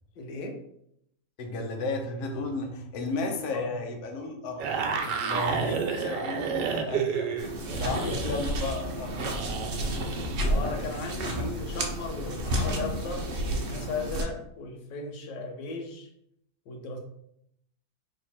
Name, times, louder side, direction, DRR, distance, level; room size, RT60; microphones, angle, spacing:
voice 1, 0.2-0.6 3.5-3.8 7.8-8.4 10.5-16.1 16.7-17.0, left 3 dB, 90° left, 3 dB, 1.4 m, -36 dB
voice 2, 1.4-7.3 7.7-9.4, left 2 dB, 65° left, 2 dB, 1.1 m, -34 dB
sound 1, 4.6-10.4, right 6 dB, 80° right, 1.2 m, -31 dB
sound 2, 7.4-14.2, equal, 65° right, 0.5 m, -31 dB
3.2 x 3.0 x 4.2 m, 0.73 s
omnidirectional pair, 1.9 m